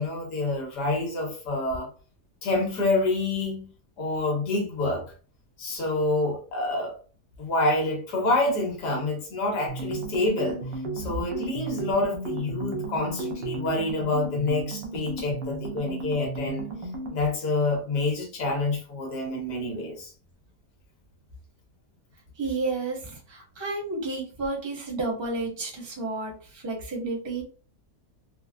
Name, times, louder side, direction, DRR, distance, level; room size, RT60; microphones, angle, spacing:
voice 1, 0.0-1.9 2.4-3.7 4.0-5.0 5.6-7.0 7.4-10.6 10.9-16.7 17.1-20.1, left 2 dB, 70° left, 1.6 m, -27 dB
sound 1, 9.7-17.3, right 2 dB, 80° right, 1.4 m, -34 dB
voice 2, 22.4-27.4, right 3 dB, 20° right, 0.9 m, -31 dB
4.2 x 2.0 x 2.4 m
omnidirectional pair, 1.9 m